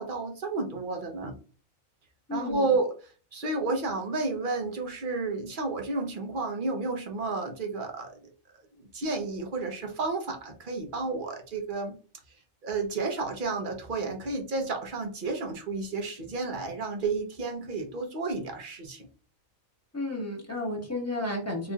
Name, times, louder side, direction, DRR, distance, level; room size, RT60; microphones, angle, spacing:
voice 1, 0.0-1.4 2.3-8.3 8.8-12.0 12.6-19.1, right 3 dB, 45° right, 4 dB, 0.9 m, -31 dB
voice 2, 2.3-2.7 19.9-21.7, left 1 dB, 10° left, -1 dB, 1.4 m, -32 dB
4.2 x 3.0 x 2.3 m, 0.36 s
omnidirectional pair, 1.4 m